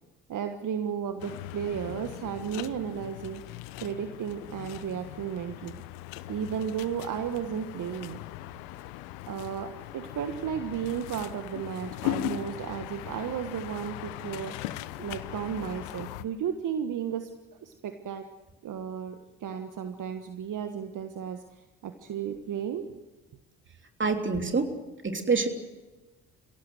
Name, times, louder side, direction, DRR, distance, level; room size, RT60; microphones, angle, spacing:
voice 1, 0.3-3.4 3.8-5.8 6.3-8.2 9.3-14.6 15.0-17.3 17.6-18.3 18.6-22.9, right 8 dB, 55° right, 7 dB, 1.5 m, -34 dB
sound 1, 1.2-16.2, left 15 dB, 75° left, 0.9 m, -39 dB
voice 2, 24.0-24.7 25.0-25.5, right 4 dB, 30° right, 5 dB, 3.3 m, -26 dB
27.0 x 17.0 x 7.9 m, 1.2 s
hypercardioid pair, 50°, 38 cm